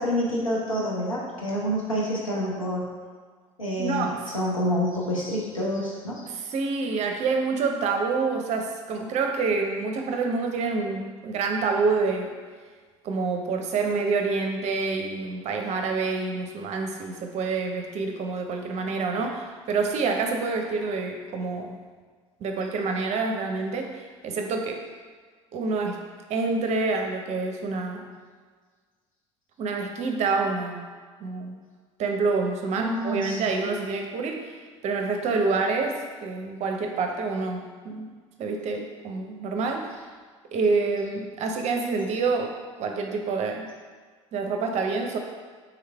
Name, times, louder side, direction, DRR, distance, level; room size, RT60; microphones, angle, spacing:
voice 1, 0.0-2.9 3.6-6.2 32.8-33.4, equal, 90° left, -5 dB, 0.8 m, -27 dB
voice 2, 3.8-4.3 6.3-12.3 13.0-21.7 22.4-24.8 25.5-26.0 26.3-28.1 29.6-30.9 31.2-31.6 32.0-34.5 34.8-38.1 38.4-40.0 40.5-43.7 44.3-45.2, right 4 dB, 45° right, 3 dB, 0.6 m, -27 dB
3.7 x 3.2 x 3.4 m, 1.5 s
figure-of-eight pair, 65°, 16 cm